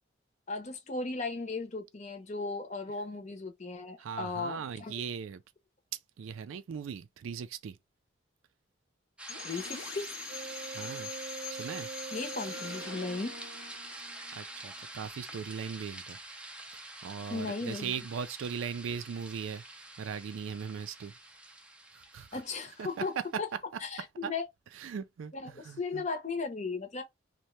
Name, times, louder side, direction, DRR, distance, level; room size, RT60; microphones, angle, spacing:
voice 1, 0.5-4.9 9.4-10.1 12.1-13.3 17.3-17.9 22.3-23.1 23.4-23.5 23.8-24.5 25.3-27.0, left 3 dB, 35° left, 0.6 m, -36 dB
voice 2, 4.0-5.4 6.2-7.8 10.7-11.1 11.5-11.9 14.3-16.2 16.7-21.1 21.9-22.4 22.8-22.9 23.2-23.3 24.2-24.3 24.7-26.0, right 6 dB, 85° right, 0.3 m, -39 dB
sound 1, 9.2-23.3, right 2 dB, 5° right, 0.4 m, -46 dB
sound 2, 9.3-15.1, left 7 dB, 85° left, 0.8 m, -45 dB
Wind instrument woodwind instrument, 10.3-13.2, right 5 dB, 45° right, 0.7 m, -43 dB
2.7 x 2.2 x 3.0 m
head